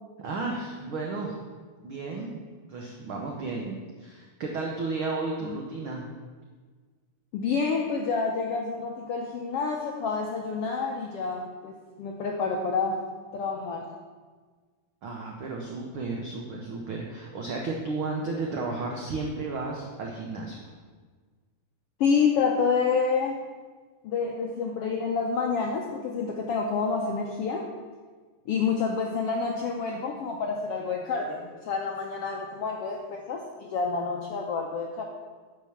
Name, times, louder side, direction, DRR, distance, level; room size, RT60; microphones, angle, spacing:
voice 1, 0.2-1.4 1.8-2.4 2.7-6.1 15.0-20.6, right 3 dB, 60° right, 0 dB, 1.4 m, -33 dB
voice 2, 7.3-13.0 13.3-13.9 22.0-23.4 24.0-27.7 28.5-35.0, left 5 dB, 80° left, 1 dB, 1.3 m, -28 dB
10.0 x 6.9 x 7.2 m, 1.5 s
omnidirectional pair, 3.9 m